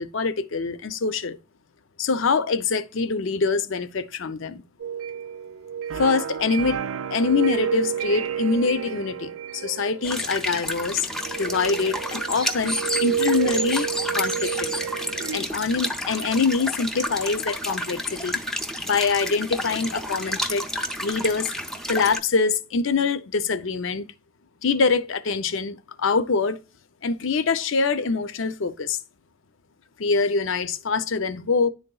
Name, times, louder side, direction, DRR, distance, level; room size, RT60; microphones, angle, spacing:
voice 1, 0.0-1.4 2.0-4.6 6.0-6.8 7.1-11.1 11.4-13.9 14.1-14.7 15.3-18.4 18.8-20.7 21.0-21.5 21.9-24.1 24.6-26.6 27.0-29.0 30.0-31.7, left 4 dB, 65° left, 0.6 m, -24 dB
sound 1, 4.8-10.6 11.1-15.4, right 8 dB, 80° right, 0.4 m, -30 dB
sound 2, 10.0-22.2, left 1 dB, ahead, 0.5 m, -30 dB
10.5 x 3.9 x 2.3 m
head